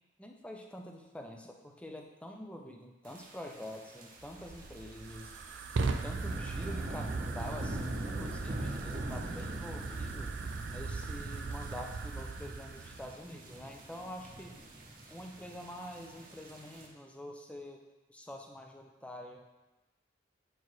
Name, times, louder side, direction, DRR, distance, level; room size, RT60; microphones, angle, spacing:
voice 1, 0.2-5.3 5.8-7.1 7.3-10.3 10.7-14.6 15.1-17.8 18.1-19.4, left 1 dB, 5° left, 2 dB, 0.5 m, -46 dB
sound 1, 3.0-16.9, right 1 dB, 45° right, 0.9 m, -45 dB
Fire, 4.2-13.2, right 3 dB, 70° right, 0.4 m, -38 dB
8.3 x 4.6 x 3.1 m, 1.1 s
head